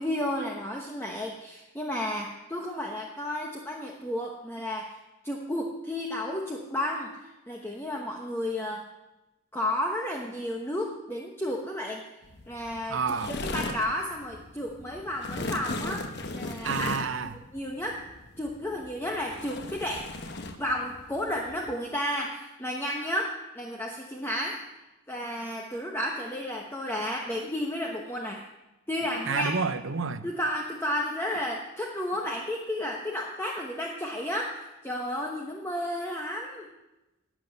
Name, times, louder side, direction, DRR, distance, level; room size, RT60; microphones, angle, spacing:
voice 1, 0.0-4.9 5.2-7.1 7.5-8.8 9.5-12.0 12.5-13.0 13.3-16.9 17.2-18.0 18.4-20.1 20.6-24.6 25.1-28.4 28.9-29.5 30.2-36.7, left 1 dB, 10° left, 0 dB, 1.0 m, -32 dB
sound 1, 12.2-21.7, left 2 dB, 50° left, 1.1 m, -38 dB
voice 2, 12.9-13.3 16.6-17.3 29.3-30.3, right 5 dB, 70° right, 11 dB, 0.8 m, -29 dB
12.0 x 7.7 x 9.6 m, 1.0 s
head